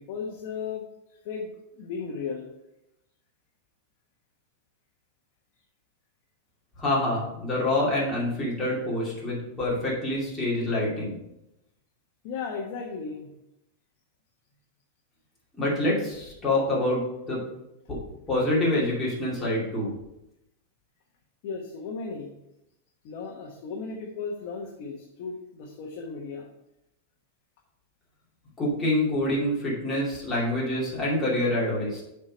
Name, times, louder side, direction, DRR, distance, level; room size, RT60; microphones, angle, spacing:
voice 1, 0.0-2.5 12.2-13.3 21.4-22.3 23.0-26.5, left 5 dB, 45° left, 0 dB, 1.1 m, -36 dB
voice 2, 6.8-11.2 15.6-17.0 17.3-17.4 17.9-18.0 18.3-19.9 28.6-32.0, left 1 dB, 10° left, -7 dB, 2.5 m, -26 dB
7.2 x 4.7 x 5.1 m, 0.87 s
supercardioid pair, 170°, 0 cm